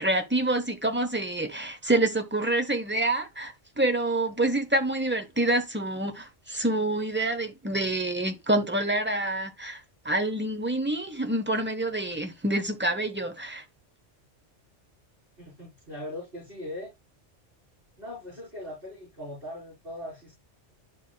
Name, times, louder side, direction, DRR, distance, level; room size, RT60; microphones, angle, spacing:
voice 1, 0.0-13.6, right 1 dB, 10° right, 0.9 m, -27 dB
voice 2, 15.4-16.9 18.0-20.3, left 1 dB, 50° right, 4.6 m, -40 dB
11.0 x 4.2 x 2.3 m
omnidirectional pair, 1.2 m